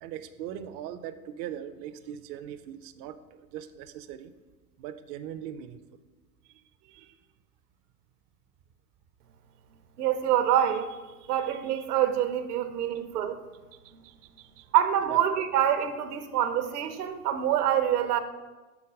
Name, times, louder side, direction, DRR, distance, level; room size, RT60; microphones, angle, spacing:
voice 1, 0.0-4.3 4.8-5.8 6.4-7.2 13.7-14.7 15.0-15.2, right 10 dB, 35° right, 10 dB, 0.4 m, -41 dB
voice 2, 10.0-11.0 11.3-13.4 14.7-18.2, right 10 dB, 80° right, 10 dB, 0.7 m, -26 dB
6.0 x 4.0 x 5.0 m, 1.2 s
hypercardioid pair, 95°, 46 cm